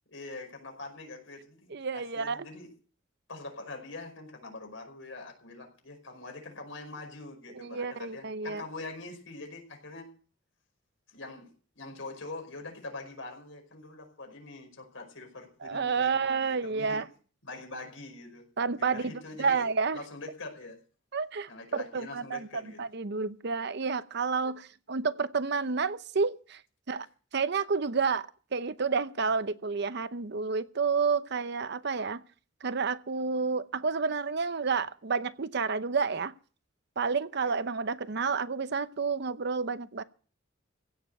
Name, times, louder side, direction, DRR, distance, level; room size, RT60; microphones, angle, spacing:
voice 1, 0.1-2.7 3.3-10.1 11.1-11.5 11.8-17.1 17.4-18.5 18.8-19.7 19.9-20.8 21.5-22.8 37.4-37.6, left 3 dB, 75° left, 5.2 m, -44 dB
voice 2, 1.7-2.5 7.5-8.6 15.6-17.1 18.6-20.0 21.1-26.6 26.9-27.1 27.3-28.3 28.5-32.2 32.6-36.3 37.0-40.0, right 5 dB, 60° right, 0.7 m, -30 dB
16.0 x 6.9 x 9.2 m
head